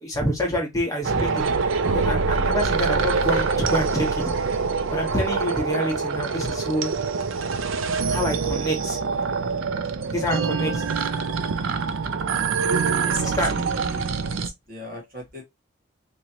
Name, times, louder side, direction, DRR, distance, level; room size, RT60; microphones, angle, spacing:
voice 1, 0.0-1.4 1.9-4.2 4.9-6.9 8.1-9.0 10.1-10.7 13.2-13.7, equal, 15° left, 1.2 m, -27 dB
sound 1, 1.0-14.5, right 5 dB, 80° right, 0.5 m, -25 dB
voice 2, 12.8-15.4, right 1 dB, 50° right, 1.7 m, -38 dB
3.6 x 3.0 x 2.8 m
head